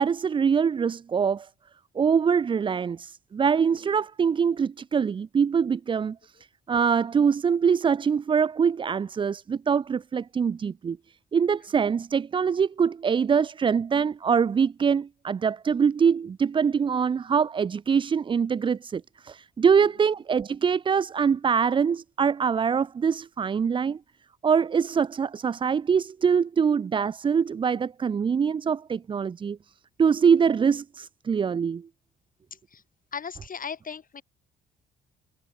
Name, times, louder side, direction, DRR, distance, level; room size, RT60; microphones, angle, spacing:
voice 1, 0.0-1.5 2.0-6.3 6.7-11.0 11.3-24.0 24.4-29.6 30.0-31.9, right 6 dB, 25° right, 0.3 m, -24 dB
voice 2, 33.1-34.2, left 6 dB, 45° left, 6.5 m, -37 dB
cardioid pair, 90°, 20 cm